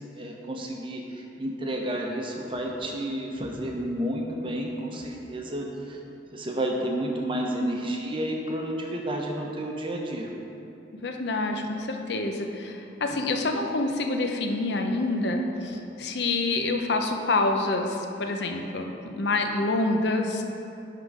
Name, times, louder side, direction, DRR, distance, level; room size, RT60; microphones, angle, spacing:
voice 1, 0.0-6.0 6.3-10.3, right 1 dB, 30° right, 0 dB, 0.8 m, -31 dB
voice 2, 11.0-18.8 19.2-20.4, left 2 dB, 65° left, 4 dB, 0.6 m, -27 dB
10.5 x 3.8 x 4.8 m, 3.0 s
head